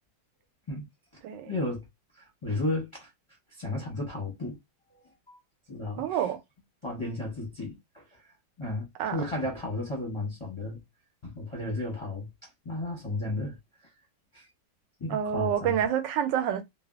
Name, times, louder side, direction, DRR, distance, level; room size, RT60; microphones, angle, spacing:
voice 1, 1.5-1.9 2.1-3.1 3.5-4.6 4.9-5.4 5.7-6.2 6.8-10.8 11.2-13.6 14.3-14.5 15.0-15.8, left 2 dB, 30° left, 0.5 m, -34 dB
voice 2, 6.0-6.4 9.0-9.2 15.1-16.6, right 9 dB, 85° right, 1.3 m, -28 dB
3.3 x 2.0 x 2.3 m
omnidirectional pair, 1.9 m